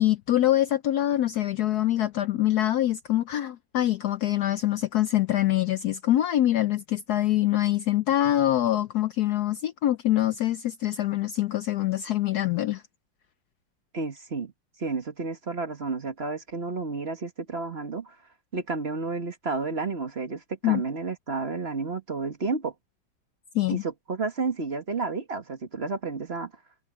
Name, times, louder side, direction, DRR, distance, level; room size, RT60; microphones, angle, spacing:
voice 1, 0.0-12.8 20.6-20.8 23.5-23.8, left 13 dB, 70° left, 1.0 m, -24 dB
voice 2, 13.9-14.5 14.8-18.1 18.5-22.7 23.7-26.5, right 3 dB, 35° right, 1.7 m, -31 dB
omnidirectional pair, 2.1 m